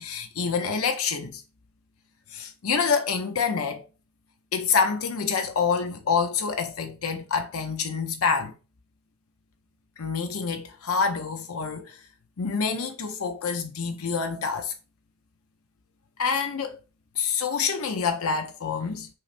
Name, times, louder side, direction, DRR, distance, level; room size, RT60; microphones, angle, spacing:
voice 1, 0.0-1.4 2.3-3.8 4.5-8.5 10.0-11.9 12.4-14.7 16.2-16.8 17.2-19.1, left 5 dB, 70° left, 0.6 m, -27 dB
5.6 x 3.2 x 2.5 m
head